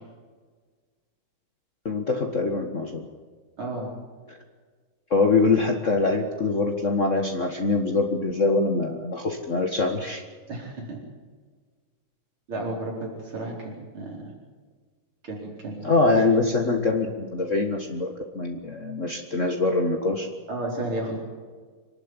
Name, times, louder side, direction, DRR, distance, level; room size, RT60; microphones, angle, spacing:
voice 1, 1.9-3.1 5.1-10.2 15.8-18.1 18.3-20.3, left 3 dB, 40° left, 3 dB, 1.9 m, -23 dB
voice 2, 3.6-3.9 10.5-11.0 12.5-14.2 15.2-16.3 20.5-21.2, right 2 dB, 85° right, -2 dB, 5.2 m, -32 dB
27.0 x 12.0 x 9.9 m, 1.5 s
omnidirectional pair, 2.3 m